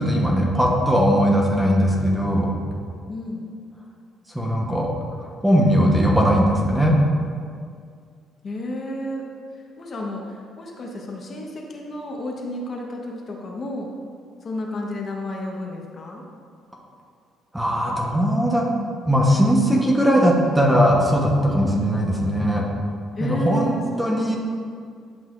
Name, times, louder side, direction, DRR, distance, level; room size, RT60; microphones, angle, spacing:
voice 1, 0.0-2.5 4.3-4.9 5.4-7.0 17.5-18.7 19.0-22.7 23.2-23.7 24.0-24.4, equal, 5° right, -2 dB, 1.0 m, -19 dB
voice 2, 3.1-3.5 8.4-9.2 9.8-13.9 14.4-16.2 21.5-21.8 23.2-24.4, equal, 40° left, -1 dB, 1.1 m, -31 dB
11.0 x 5.6 x 2.5 m, 2.1 s
cardioid pair, 105°, 0 cm